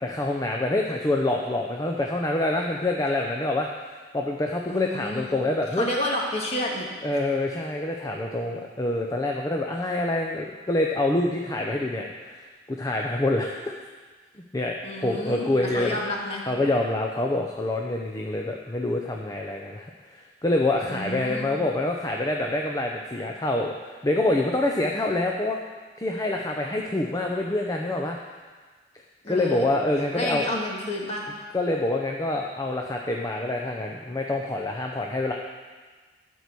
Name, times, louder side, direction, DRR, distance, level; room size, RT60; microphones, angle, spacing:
voice 1, 0.0-5.9 7.0-13.7 14.5-16.0 16.5-25.6 26.0-28.2 29.3-30.5 31.5-35.3, left 2 dB, 20° left, 0 dB, 0.6 m, -26 dB
voice 2, 4.7-5.3 5.8-6.9 14.8-16.4 20.9-21.5 29.2-29.7 30.1-31.2, left 1 dB, 35° left, -2 dB, 1.9 m, -30 dB
12.5 x 4.6 x 8.3 m, 1.4 s
head